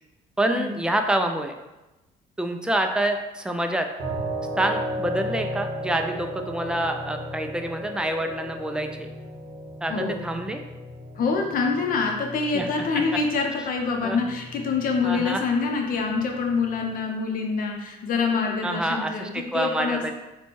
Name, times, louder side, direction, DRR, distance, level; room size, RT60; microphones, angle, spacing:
voice 1, 0.4-1.5 2.4-3.9 4.6-9.1 9.8-10.6 12.5-12.7 12.9-13.0 14.0-14.2 15.0-15.4 18.6-20.1, right 1 dB, 5° right, 5 dB, 0.3 m, -27 dB
sound 1, 4.0-17.0, equal, 50° right, 1.1 m, -36 dB
voice 2, 9.9-10.2 11.2-20.1, left 4 dB, 55° left, 2 dB, 0.7 m, -26 dB
3.0 x 2.2 x 4.2 m, 1.0 s
cardioid pair, 110°, 17 cm